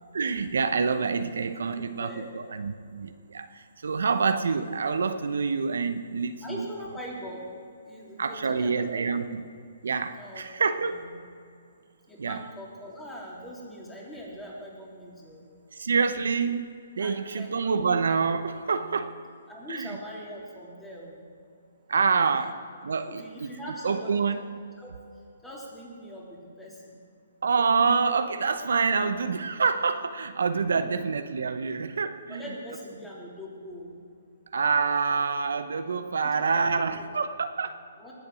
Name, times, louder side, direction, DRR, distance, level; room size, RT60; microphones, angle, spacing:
voice 1, 0.1-6.6 8.2-9.5 9.8-11.1 12.2-12.4 15.7-19.2 19.7-20.0 21.9-22.6 22.8-23.5 23.8-24.4 27.4-32.4 34.5-37.8, right 5 dB, 80° right, 10 dB, 0.8 m, -27 dB
voice 2, 2.0-2.4 6.4-7.5 7.8-9.1 10.1-11.2 12.1-15.4 17.0-18.0 19.5-21.2 22.4-22.6 23.1-24.5 24.8-24.9 25.4-27.0 30.7-31.0 32.3-34.0 35.5-35.6 36.1-37.0 38.0-38.1, equal, 10° left, -4 dB, 3.3 m, -42 dB
20.0 x 7.9 x 6.3 m, 2.4 s
hypercardioid pair, 145°, 0 cm